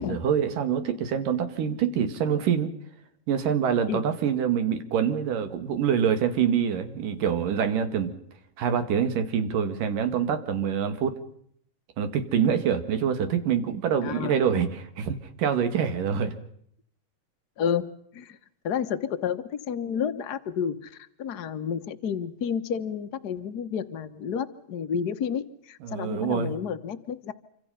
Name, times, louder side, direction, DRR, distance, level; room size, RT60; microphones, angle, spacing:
voice 1, 0.0-2.7 3.3-8.1 8.6-11.2 12.0-16.3 25.8-26.5, right 8 dB, 85° right, 8 dB, 3.7 m, -25 dB
voice 2, 14.0-14.3 17.6-17.9 18.1-18.4 18.6-27.3, left 7 dB, 70° left, 9 dB, 0.9 m, -30 dB
27.0 x 25.5 x 5.7 m, 0.68 s
omnidirectional pair, 3.7 m